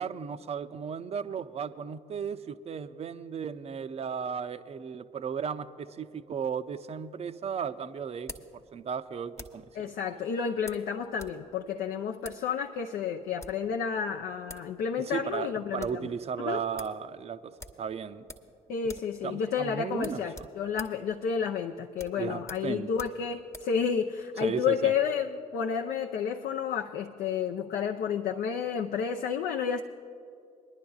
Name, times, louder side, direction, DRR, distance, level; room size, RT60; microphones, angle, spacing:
voice 1, 0.0-9.9 15.0-18.2 19.2-20.5 22.2-22.9 24.4-24.9, right 7 dB, 35° right, 12 dB, 0.5 m, -35 dB
sound 1, 6.8-9.7 10.7-11.4 11.7-11.8 12.2-12.5 13.2-13.7 14.2-14.3 14.5-14.7 15.0-15.1 15.4-16.0 16.4-16.5 16.8-17.0 17.6-18.6 18.8-19.2 19.4-19.6 20.0-23.8, left 1 dB, 15° left, 1.1 m, -47 dB
voice 2, 9.8-16.1 16.4-16.6 18.7-29.8, left 7 dB, 55° left, 2 dB, 0.6 m, -31 dB
24.0 x 11.0 x 2.4 m, 2.6 s
figure-of-eight pair, 50°, 19 cm